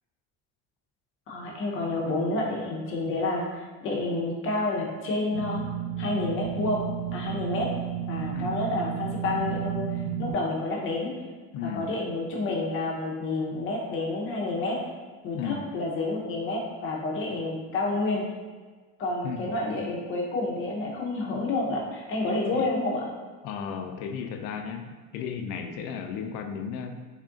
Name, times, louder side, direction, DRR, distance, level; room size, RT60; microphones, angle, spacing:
voice 1, 1.3-5.6 6.0-6.8 7.1-7.7 8.1-9.8 10.2-11.1 11.6-14.8 15.2-18.2 19.0-23.1, left 2 dB, 40° left, -2 dB, 0.7 m, -29 dB
sound 1, 5.3-10.3, right 10 dB, 85° right, 1.0 m, -32 dB
voice 2, 11.5-11.9 15.3-15.6 19.2-19.5 22.5-22.7 23.4-27.1, left 7 dB, 80° left, 5 dB, 0.5 m, -34 dB
3.5 x 2.4 x 3.7 m, 1.4 s
cardioid pair, 165°, 33 cm